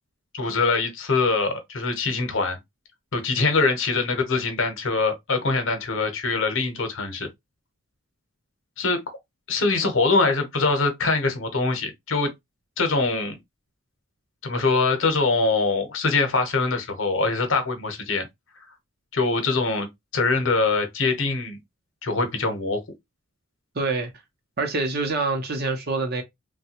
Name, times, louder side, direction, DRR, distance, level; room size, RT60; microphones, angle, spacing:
voice 1, 0.3-2.6 3.1-7.3 8.8-9.0 9.5-12.3 12.8-13.4 14.4-18.3 19.1-19.9 20.1-21.6 22.0-22.8, left 3 dB, 65° left, 0.8 m, -23 dB
voice 2, 23.7-24.1 24.6-26.2, right 3 dB, 50° right, 0.7 m, -25 dB
3.2 x 2.2 x 2.8 m
head